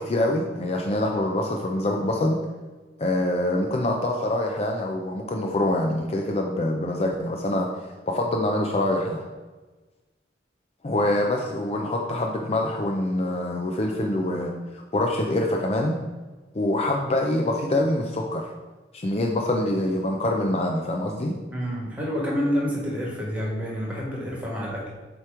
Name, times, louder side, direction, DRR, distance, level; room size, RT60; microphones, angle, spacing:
voice 1, 0.0-2.4 3.0-7.7 8.1-9.2 10.8-16.0 16.5-18.5 18.9-21.3, left 1 dB, 35° left, 2 dB, 0.5 m, -25 dB
voice 2, 21.5-24.9, equal, 10° right, -4 dB, 1.6 m, -28 dB
7.8 x 3.0 x 4.8 m, 1.3 s
head